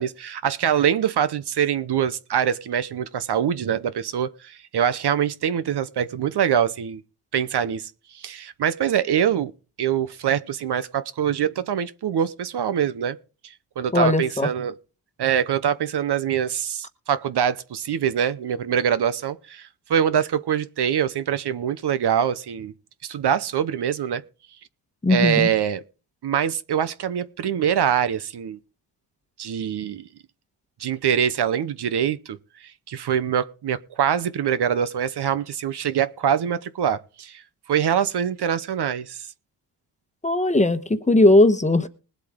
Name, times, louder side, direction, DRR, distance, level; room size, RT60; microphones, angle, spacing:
voice 1, 0.0-7.0 7.3-9.5 9.8-13.2 13.4-14.7 15.2-22.7 23.0-24.2 25.1-25.8 26.2-28.6 29.4-30.1 30.8-37.4 37.7-39.3, right 8 dB, 60° right, 0.9 m, -24 dB
voice 2, 13.9-14.5 25.0-25.5 40.2-41.9, left 2 dB, 15° left, 1.2 m, -18 dB
20.5 x 8.2 x 3.7 m
cardioid pair, 90°, 44 cm